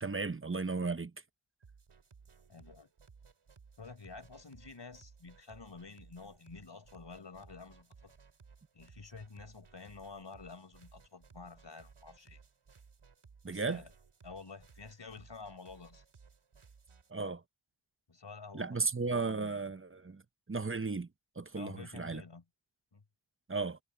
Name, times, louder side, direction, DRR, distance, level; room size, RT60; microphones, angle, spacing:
voice 1, 0.0-1.1 13.4-13.8 17.1-17.4 18.5-20.2 20.5-21.1 21.4-22.2 23.5-23.8, right 4 dB, 25° right, 0.8 m, -35 dB
sound 1, 1.6-17.1, right 5 dB, 85° right, 3.0 m, -60 dB
voice 2, 2.5-2.9 3.8-8.1 8.7-12.4 13.5-13.9 14.2-16.0 18.1-18.8 19.1-19.6 21.5-22.4 22.9-23.0, left 4 dB, 60° left, 5.1 m, -50 dB
wide cardioid pair, 80°, 49 cm